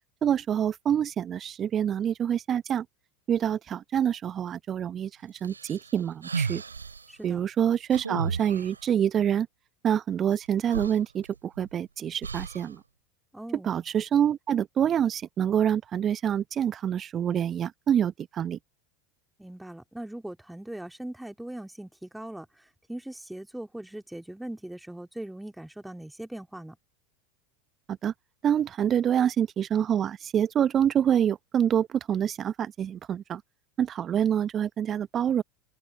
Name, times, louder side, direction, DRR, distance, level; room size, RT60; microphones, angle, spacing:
voice 1, 0.2-2.9 3.3-6.6 7.2-9.5 9.8-12.8 13.6-18.6 27.9-28.1 28.4-33.4 33.8-35.4, right 9 dB, 30° right, 0.8 m, -26 dB
sound 1, 5.4-7.1 7.9-8.8 10.3-10.4 10.7-11.7 12.2-12.7, right 5 dB, 80° right, 3.3 m, -33 dB
voice 2, 7.1-7.4 13.3-13.7 19.4-26.8, right 1 dB, 5° right, 3.3 m, -40 dB
figure-of-eight pair, 80°, 0 cm